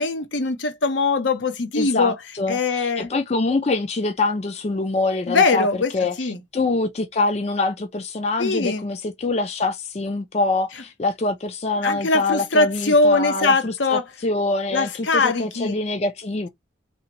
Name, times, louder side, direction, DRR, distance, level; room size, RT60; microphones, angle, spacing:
voice 1, 0.0-2.2 2.5-3.1 5.3-5.9 6.2-6.4 8.4-8.8 11.8-14.0 14.7-15.8, left 3 dB, 75° left, 0.8 m, -21 dB
voice 2, 1.8-5.7 5.9-16.5, left 3 dB, 35° left, 0.4 m, -25 dB
3.3 x 2.8 x 2.9 m
head